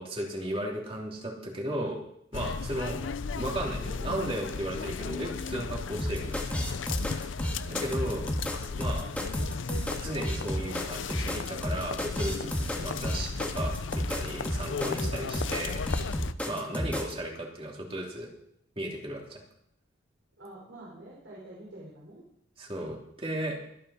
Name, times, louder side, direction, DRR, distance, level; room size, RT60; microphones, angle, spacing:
voice 1, 0.0-2.0 2.3-3.0 3.3-6.7 7.7-8.3 8.8-9.1 10.0-15.8 16.4-18.3 18.8-19.4 22.6-23.6, right 1 dB, 30° right, -1 dB, 3.0 m, -35 dB
sound 1, 2.3-16.3, left 5 dB, 80° left, 0.5 m, -36 dB
sound 2, 6.0-17.1, equal, 5° left, 1.6 m, -32 dB
voice 2, 7.5-7.9 16.5-16.7 20.4-22.2, right 1 dB, 75° right, -5 dB, 4.7 m, -47 dB
24.0 x 8.9 x 4.3 m, 0.75 s
head